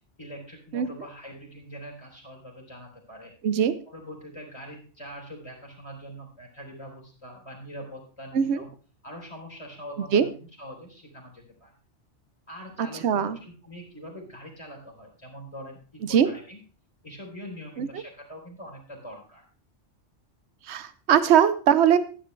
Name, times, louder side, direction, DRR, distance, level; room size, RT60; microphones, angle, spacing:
voice 1, 0.2-3.3 3.9-8.7 9.0-11.7 12.5-16.6 17.0-19.4, equal, 25° left, -1 dB, 3.4 m, -43 dB
voice 2, 3.4-3.7 8.3-8.6 10.1-10.3 12.8-13.4 16.1-16.3 17.8-17.9 20.7-22.0, right 8 dB, 65° right, 13 dB, 1.0 m, -21 dB
13.5 x 10.0 x 3.2 m, 0.37 s
omnidirectional pair, 1.2 m